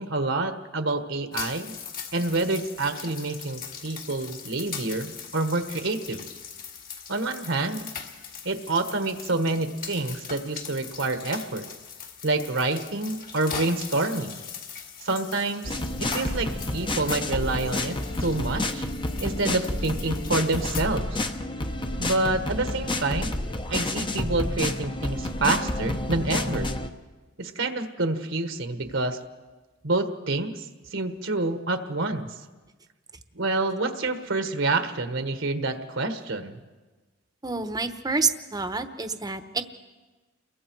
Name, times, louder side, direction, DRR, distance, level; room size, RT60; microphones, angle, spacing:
voice 1, 0.0-1.7 2.1-6.2 7.1-7.9 8.4-11.6 12.2-14.4 15.0-18.9 19.2-21.2 22.0-23.4 23.7-26.7 27.4-29.2 29.8-30.6 30.9-32.3 33.3-36.6, right 2 dB, 70° right, 7 dB, 1.4 m, -27 dB
sound 1, 1.3-20.8, left 6 dB, 45° left, 2.4 m, -40 dB
sound 2, 15.6-26.9, left 2 dB, 25° left, 1.0 m, -29 dB
voice 2, 37.4-39.6, right 4 dB, 20° right, 9 dB, 1.0 m, -28 dB
29.5 x 22.5 x 4.7 m, 1.3 s
head